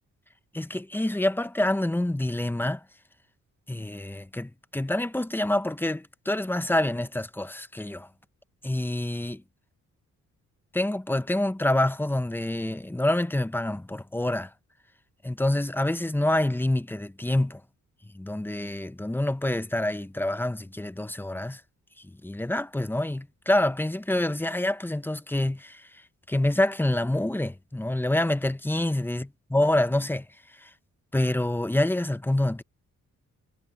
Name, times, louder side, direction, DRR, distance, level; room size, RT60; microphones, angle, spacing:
voice 1, 0.5-2.8 3.7-8.1 8.6-9.4 10.7-14.5 15.2-17.6 18.1-21.6 22.2-25.9 26.3-30.3 30.6-30.7 31.1-32.6, left 1 dB, 5° left, 0.9 m, -27 dB
cardioid pair, 75°, 31 cm